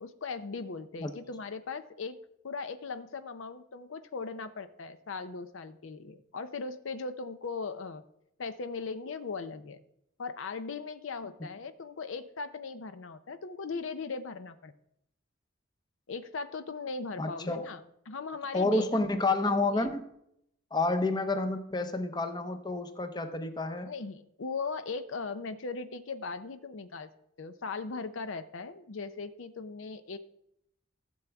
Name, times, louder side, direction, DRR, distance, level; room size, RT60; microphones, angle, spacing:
voice 1, 0.0-2.2 2.4-8.0 8.4-9.8 10.2-14.7 16.1-17.8 18.1-19.0 19.4-19.9 23.9-27.1 27.4-30.2, left 4 dB, 70° left, 11 dB, 0.6 m, -38 dB
voice 2, 17.2-17.7 18.5-20.1 20.7-23.9, left 2 dB, 20° left, 7 dB, 0.6 m, -29 dB
16.0 x 7.0 x 3.5 m, 0.77 s
head